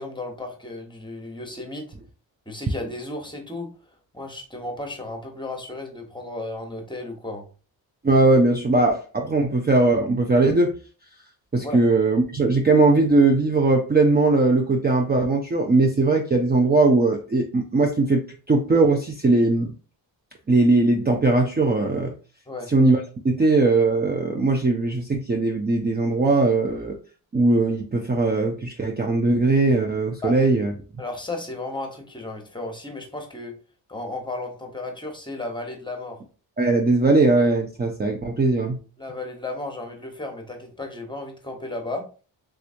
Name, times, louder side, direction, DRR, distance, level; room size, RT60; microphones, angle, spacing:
voice 1, 0.0-1.9 2.5-3.7 4.1-7.5 11.6-11.8 22.5-22.7 30.2-30.4 31.0-33.5 33.9-36.2 39.0-42.2, left 2 dB, 10° left, 3 dB, 1.1 m, -34 dB
voice 2, 8.0-10.7 11.5-18.2 18.5-19.7 20.5-22.1 22.7-23.0 23.2-27.0 27.3-30.7 36.6-38.8, right 3 dB, 20° right, 2 dB, 0.5 m, -19 dB
3.5 x 3.0 x 2.6 m, 0.37 s
cardioid pair, 70°, 45 cm